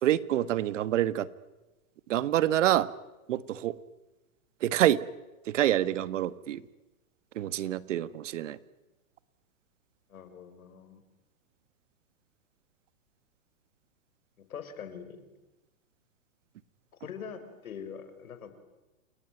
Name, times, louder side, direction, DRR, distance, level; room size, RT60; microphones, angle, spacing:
voice 1, 0.0-1.3 2.1-2.9 3.3-3.8 4.6-5.0 5.5-6.7 7.4-8.6, right 12 dB, 60° right, 16 dB, 1.6 m, -27 dB
voice 2, 10.1-11.0 14.5-15.3 17.0-18.5, left 7 dB, 80° left, 10 dB, 5.4 m, -43 dB
29.5 x 21.0 x 9.3 m, 1.1 s
hypercardioid pair, 150°, 42 cm